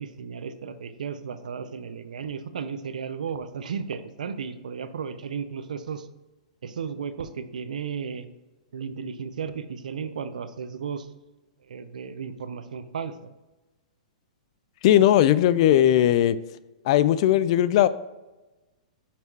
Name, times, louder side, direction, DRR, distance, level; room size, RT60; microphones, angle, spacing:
voice 1, 0.0-6.1 6.6-8.3 8.7-11.1 11.6-13.3, right 6 dB, 85° right, 11 dB, 0.6 m, -34 dB
voice 2, 14.8-16.4 16.9-17.9, left 12 dB, 50° left, 16 dB, 0.4 m, -18 dB
5.8 x 5.4 x 4.6 m, 1.1 s
hypercardioid pair, 140°, 4 cm